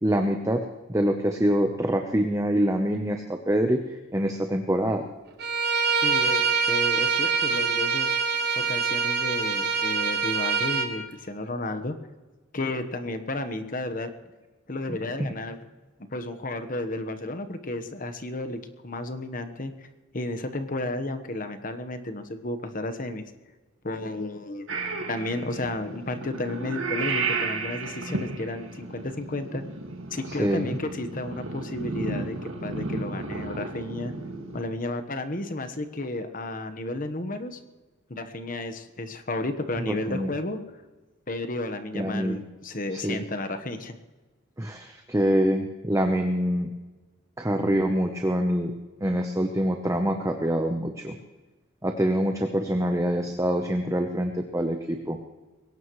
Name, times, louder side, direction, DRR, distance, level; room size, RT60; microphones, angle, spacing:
voice 1, 0.0-3.8 4.1-5.1 14.9-15.3 30.4-30.7 39.9-40.3 41.9-42.4 42.9-43.2 44.6-46.7 47.4-48.7 49.0-51.2 51.8-55.2, equal, 15° right, 4 dB, 0.9 m, -25 dB
Bowed string instrument, 5.4-10.9, right 5 dB, 50° right, 1.6 m, -25 dB
voice 2, 6.0-8.2 8.5-11.9 12.5-14.1 14.7-15.6 16.1-19.9 20.1-23.2 23.8-24.7 25.1-29.6 30.1-34.1 34.5-37.6 38.1-40.6 41.3-44.0, left 2 dB, 40° left, 8 dB, 1.3 m, -32 dB
Purr / Meow, 24.7-34.6, right 3 dB, 70° right, 2.0 m, -33 dB
21.5 x 18.0 x 3.2 m, 1.2 s
head